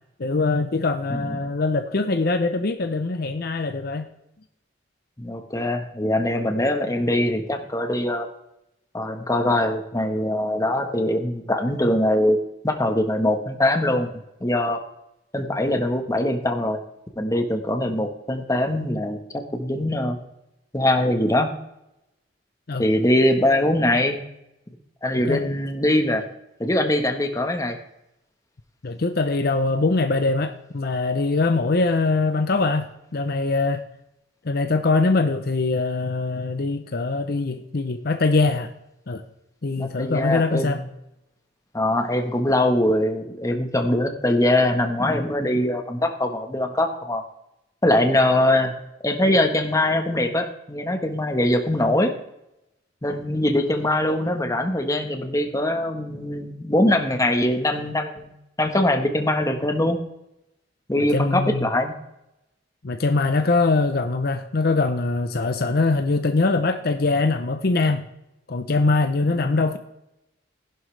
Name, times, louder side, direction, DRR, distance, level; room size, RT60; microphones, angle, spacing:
voice 1, 0.2-4.1 22.7-22.9 25.3-25.5 28.8-33.8 34.4-38.7 39.1-39.2 39.6-40.8 61.1-61.7 62.8-68.0 68.5-69.8, left 3 dB, 55° left, 8 dB, 0.7 m, -22 dB
voice 2, 1.1-1.4 5.2-8.3 8.9-12.4 12.6-14.1 14.4-14.8 15.3-16.8 17.2-20.2 20.7-21.5 22.8-24.2 25.0-26.2 26.6-27.8 39.8-40.9 41.7-47.2 47.8-48.8 49.0-52.1 53.0-60.0 60.9-61.9 69.2-69.6, left 1 dB, 20° left, 5 dB, 1.3 m, -22 dB
15.0 x 11.0 x 3.3 m, 0.85 s
head